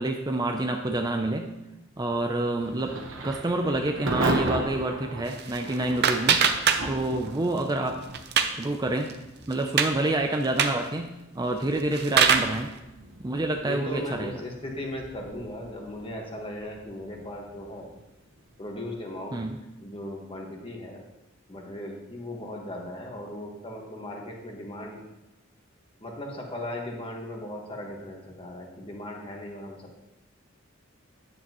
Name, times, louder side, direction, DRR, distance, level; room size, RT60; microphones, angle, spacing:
voice 1, 0.0-1.5 2.0-3.0 3.2-6.4 6.8-8.0 8.5-9.1 9.5-12.7 13.2-14.3 19.3-19.6, right 2 dB, 20° right, 4 dB, 0.5 m, -28 dB
Thunder / Rain, 2.6-19.3, right 2 dB, 70° right, 1.2 m, -37 dB
sound 1, 5.3-7.3 7.6-8.7 9.1-9.2 9.5-9.9 10.4-10.9 11.6-12.6, right 7 dB, 55° right, 0.7 m, -23 dB
voice 2, 13.6-17.9 18.6-19.4 19.8-21.0 21.5-25.0 26.0-30.0, left 1 dB, 25° left, 0 dB, 1.5 m, -37 dB
9.9 x 8.0 x 3.0 m, 0.96 s
head